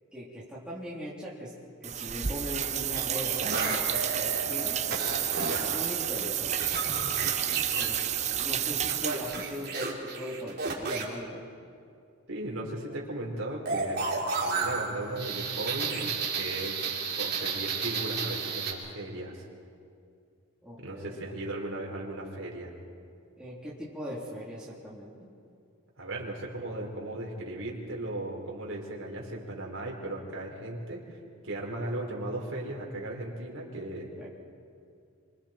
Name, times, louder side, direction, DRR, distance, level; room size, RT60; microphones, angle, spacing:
voice 1, 0.1-1.5 1.8-5.2 5.6-6.9 7.8-8.0 8.3-11.5 20.6-21.2 23.4-25.3 34.2-34.3, equal, 5° right, -8 dB, 3.4 m, -40 dB
sound 1, 1.8-9.7, right 10 dB, 30° right, 0.6 m, -31 dB
sound 2, 3.0-4.4 4.9-5.8 6.2-7.9 8.9-11.0 13.7-18.7, right 4 dB, 50° right, 3.7 m, -32 dB
voice 2, 12.3-19.5 20.8-22.7 26.0-31.2 31.4-34.1, right 1 dB, 70° right, -1 dB, 4.3 m, -37 dB
27.5 x 26.0 x 4.5 m, 2.3 s
head